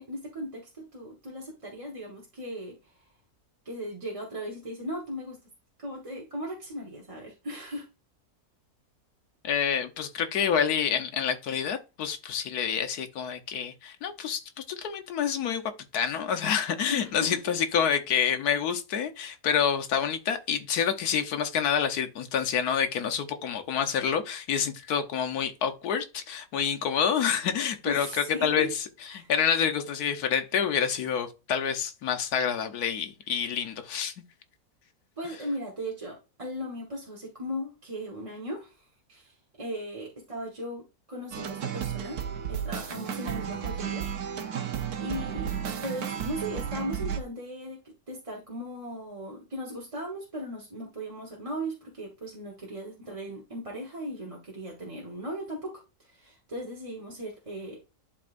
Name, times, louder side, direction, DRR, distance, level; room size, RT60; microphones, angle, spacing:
voice 1, 0.0-2.8 3.6-5.4 5.8-7.9 16.9-17.5 27.8-28.7 29.1-29.3 35.2-38.8 39.1-42.2 42.5-44.1 45.0-45.5 45.8-57.9, equal, 25° right, 1.3 m, -37 dB
voice 2, 9.4-14.4 14.7-15.6 15.9-28.7 29.1-34.1, left 7 dB, 85° left, 1.5 m, -28 dB
sound 1, 41.3-47.2, right 8 dB, 85° right, 1.5 m, -33 dB
11.5 x 4.1 x 2.5 m
omnidirectional pair, 1.6 m